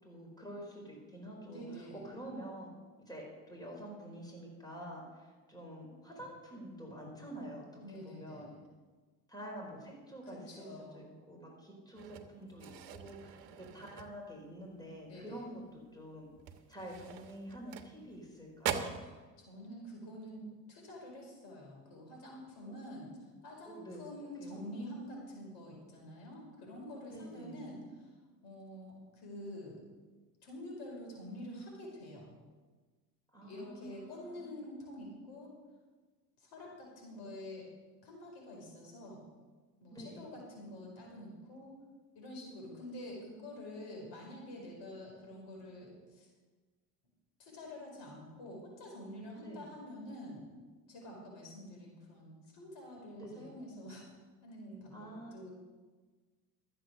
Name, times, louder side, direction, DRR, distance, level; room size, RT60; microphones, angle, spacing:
voice 1, 0.0-2.7 3.1-8.5 9.3-16.3 16.7-18.9 22.6-22.7 23.7-24.0 24.4-24.6 27.1-27.6 33.3-34.5 39.9-40.3 49.4-49.6 53.2-53.5 54.9-55.3, right 1 dB, 10° left, -1 dB, 4.5 m, -48 dB
voice 2, 1.4-2.0 7.8-8.6 10.3-11.1 15.1-15.4 19.0-20.4 20.7-28.1 28.4-29.8 30.4-32.3 33.4-35.5 36.4-37.7 38.0-39.2 39.8-41.7 42.1-46.3 47.4-50.5 50.9-54.1 54.4-55.5, left 1 dB, 55° left, -1 dB, 5.1 m, -47 dB
sound 1, 12.0-14.6 14.9-15.2 15.6-15.7 16.3-18.3 18.6-19.1, right 8 dB, 60° right, 1.3 m, -42 dB
13.5 x 7.7 x 6.5 m, 1.3 s
hypercardioid pair, 75°, 49 cm